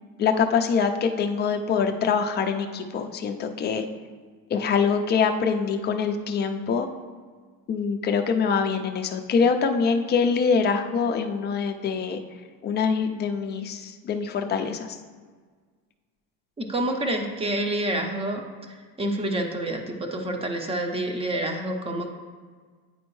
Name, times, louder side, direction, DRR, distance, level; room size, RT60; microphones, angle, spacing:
voice 1, 0.2-3.8 4.5-6.9 7.7-12.2 12.6-15.0, left 5 dB, 25° left, 5 dB, 0.4 m, -24 dB
voice 2, 16.6-22.1, right 1 dB, 15° right, 4 dB, 0.6 m, -28 dB
9.3 x 4.2 x 3.1 m, 1.5 s
cardioid pair, 135°, 39 cm